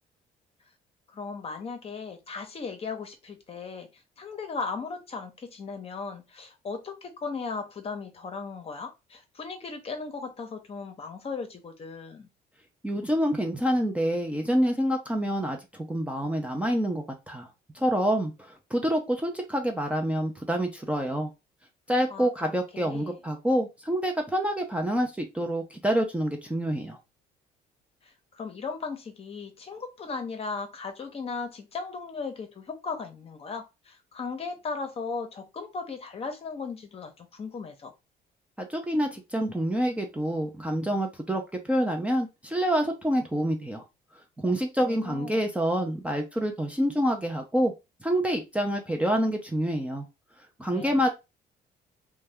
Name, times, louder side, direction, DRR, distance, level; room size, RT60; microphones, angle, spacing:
voice 1, 1.1-12.3 22.1-22.3 22.7-23.2 28.0-37.9 44.8-45.5 50.7-51.0, left 4 dB, 35° left, 0.8 m, -37 dB
voice 2, 12.8-17.5 17.7-21.3 21.9-27.0 38.6-43.8 44.4-47.7 48.0-50.1 50.6-51.1, equal, 5° right, 0.5 m, -27 dB
2.7 x 2.2 x 3.4 m
cardioid pair, 110°, 17 cm